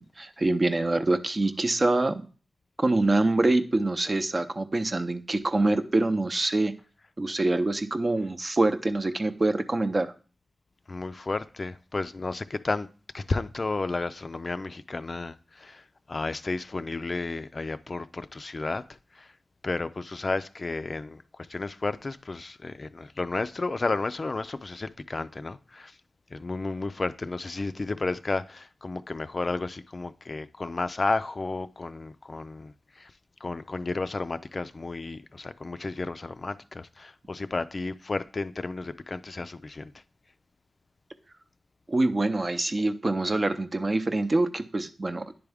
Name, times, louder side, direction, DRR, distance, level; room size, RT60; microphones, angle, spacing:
voice 1, 0.2-2.3 2.8-6.7 7.2-10.1 41.9-45.2, right 2 dB, 45° right, 0.6 m, -25 dB
voice 2, 10.9-12.9 13.1-15.8 16.1-18.8 19.2-19.3 19.6-21.2 21.5-25.9 26.3-33.1 33.4-39.9, left 3 dB, 50° left, 0.3 m, -32 dB
9.7 x 3.5 x 3.4 m
cardioid pair, 45°, 0 cm